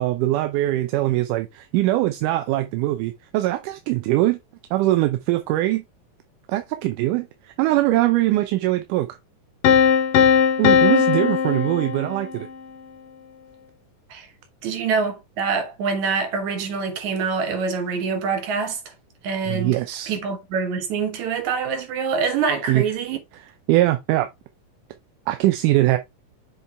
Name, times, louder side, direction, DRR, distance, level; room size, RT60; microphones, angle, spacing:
voice 1, 0.0-4.4 4.7-5.8 6.5-7.3 7.6-9.1 10.6-12.5 19.5-20.2 22.7-22.8 23.7-24.3 25.3-26.0, right 16 dB, 85° right, 2.1 m, -21 dB
Piano, 9.6-12.5, left 7 dB, 80° left, 1.3 m, -18 dB
voice 2, 14.6-18.8 19.2-19.8 20.1-23.2, right 5 dB, 65° right, 2.7 m, -25 dB
6.9 x 4.4 x 3.3 m
omnidirectional pair, 3.7 m